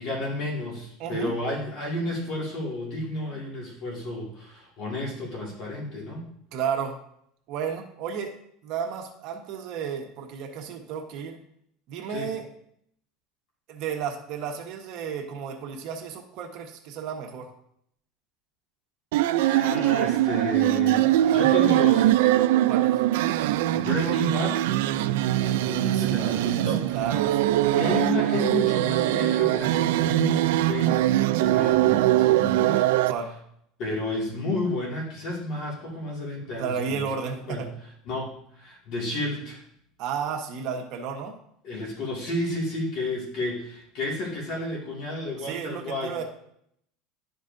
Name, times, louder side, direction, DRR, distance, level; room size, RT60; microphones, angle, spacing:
voice 1, 0.0-6.3 12.1-12.3 19.5-22.3 23.5-24.7 25.4-26.8 27.7-32.8 33.8-37.1 37.5-37.7 38.1-39.6 41.6-46.1, left 2 dB, 50° left, -2 dB, 2.1 m, -32 dB
voice 2, 1.0-1.3 6.5-7.0 7.5-8.4 8.6-11.4 11.9-12.5 13.7-17.5 22.7-23.0 25.3-27.5 33.0-33.4 36.6-37.7 40.0-41.4 45.4-46.2, right 7 dB, 55° right, 2 dB, 1.2 m, -33 dB
sound 1, 19.1-33.1, right 14 dB, 85° right, 0.3 m, -22 dB
11.5 x 5.2 x 2.6 m, 0.71 s
supercardioid pair, 145°, 0 cm